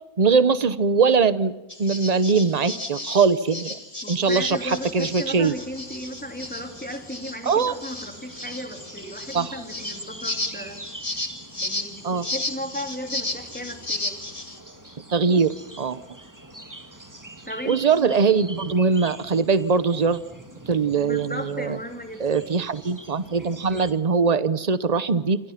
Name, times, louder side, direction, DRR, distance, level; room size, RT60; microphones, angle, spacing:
voice 1, 0.2-1.5 1.8-3.7 4.1-5.5 7.4-7.7 9.3-9.6 12.0-12.3 15.1-15.5 15.8-16.0 17.7-20.2 20.7-21.8 22.2-25.4, right 5 dB, 30° right, 15 dB, 0.9 m, -21 dB
sound 1, 1.7-14.6, left 2 dB, 25° left, 2.3 m, -34 dB
voice 2, 4.0-10.8 11.6-14.2 17.5-18.1 21.0-22.5, equal, 5° left, 5 dB, 2.7 m, -35 dB
sound 2, 4.4-23.9, right 1 dB, 10° right, 1.8 m, -44 dB
27.5 x 26.5 x 5.9 m, 1.0 s
omnidirectional pair, 1.6 m